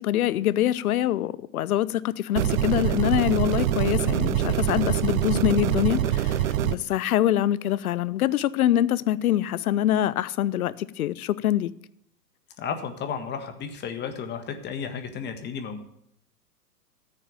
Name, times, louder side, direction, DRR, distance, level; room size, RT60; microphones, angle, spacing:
voice 1, 0.0-11.7, left 12 dB, 60° left, 0.8 m, -24 dB
sound 1, 2.4-6.8, right 11 dB, 55° right, 0.8 m, -24 dB
voice 2, 12.6-15.8, left 6 dB, 20° left, 1.6 m, -33 dB
14.5 x 6.6 x 8.9 m
hypercardioid pair, 120°, 48 cm